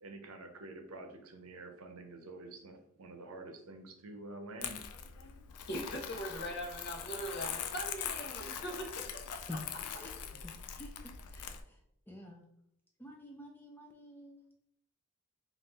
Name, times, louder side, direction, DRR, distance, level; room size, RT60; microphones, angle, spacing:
voice 1, 0.0-4.8, right 2 dB, 80° right, 5 dB, 0.7 m, -48 dB
Crumpling crinkling, 4.6-11.6, left 8 dB, 90° left, 0.4 m, -42 dB
voice 2, 5.7-9.6, equal, 45° left, 2 dB, 0.8 m, -41 dB
voice 3, 10.8-11.8 12.1-12.5 13.0-14.4, left 1 dB, 10° left, 1 dB, 0.3 m, -48 dB
3.7 x 2.5 x 3.9 m, 0.75 s
head